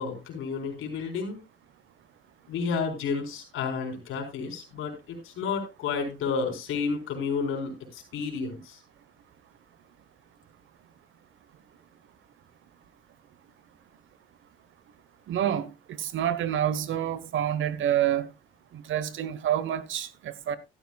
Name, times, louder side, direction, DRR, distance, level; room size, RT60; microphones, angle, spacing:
voice 1, 0.0-1.4 2.5-8.8, left 5 dB, 80° left, 4.4 m, -31 dB
voice 2, 15.3-18.3 18.7-20.6, right 10 dB, 75° right, 1.2 m, -28 dB
14.0 x 12.5 x 2.4 m
cardioid pair, 75°, 20 cm